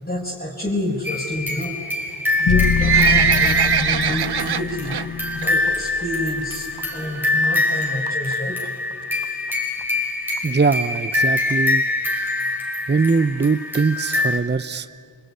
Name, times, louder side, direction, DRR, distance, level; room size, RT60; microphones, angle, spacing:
voice 1, 0.0-1.8 2.4-5.0 5.3-8.6, left 1 dB, 20° left, -4 dB, 5.1 m, -29 dB
sound 1, 1.0-14.4, left 2 dB, 5° right, 5.6 m, -24 dB
Livestock farm animals working animals, 2.4-5.1 5.4-5.7 6.0-6.1 6.8-6.9 7.1-7.2 7.4-7.5 8.1-8.3 8.9-9.0 9.2-9.3 9.5-9.6 9.8-9.9 10.4-10.5 10.9-11.0 11.5-11.6, right 9 dB, 60° right, 0.7 m, -21 dB
sound 2, 2.5-6.7, left 6 dB, 90° left, 1.4 m, -25 dB
voice 2, 10.4-11.8 12.9-14.9, right 4 dB, 25° right, 15 dB, 0.7 m, -21 dB
26.5 x 20.0 x 9.8 m, 2.4 s
cardioid pair, 45°, 44 cm